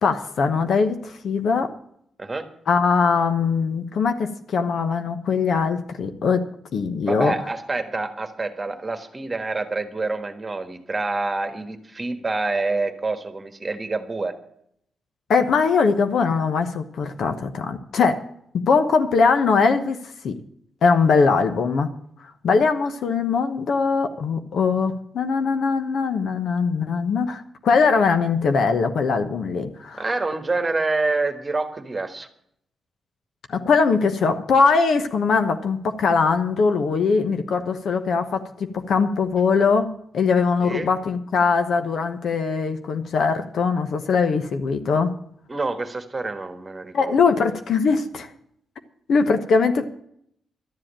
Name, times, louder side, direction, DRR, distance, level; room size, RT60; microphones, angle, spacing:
voice 1, 0.0-1.7 2.7-7.3 15.3-18.3 18.5-20.0 20.2-20.4 20.8-21.9 22.2-30.0 33.5-45.1 46.9-48.3 49.1-49.8, left 5 dB, 65° left, 7 dB, 1.1 m, -21 dB
voice 2, 7.0-14.3 30.0-32.3 40.6-40.9 45.5-47.1, right 3 dB, 25° right, 8 dB, 1.5 m, -27 dB
12.5 x 7.7 x 8.8 m, 0.69 s
cardioid pair, 115°, 0 cm